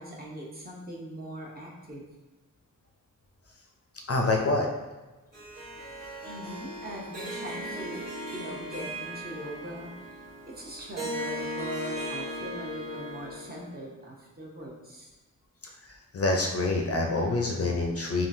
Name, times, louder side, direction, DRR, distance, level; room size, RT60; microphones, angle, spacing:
voice 1, 0.0-2.1 5.9-15.1, equal, 30° right, -4 dB, 0.7 m, -41 dB
voice 2, 4.1-4.7 16.1-18.3, left 2 dB, 45° left, 1 dB, 0.4 m, -26 dB
Harp, 5.3-13.8, equal, 75° right, 1.2 m, -38 dB
3.6 x 2.4 x 2.6 m, 1.1 s
wide cardioid pair, 95°, 33 cm